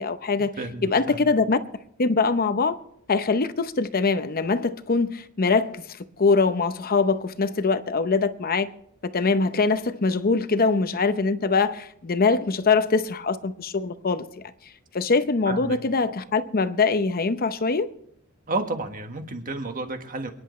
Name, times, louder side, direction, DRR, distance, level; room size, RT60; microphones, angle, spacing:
voice 1, 0.0-0.5 0.8-1.6 2.0-2.7 3.1-8.7 9.1-14.3 14.9-17.9, left 4 dB, 45° left, 0.7 m, -23 dB
voice 2, 0.6-1.3 15.5-15.8 18.5-20.3, right 2 dB, 40° right, 1.5 m, -31 dB
28.5 x 10.5 x 3.2 m
head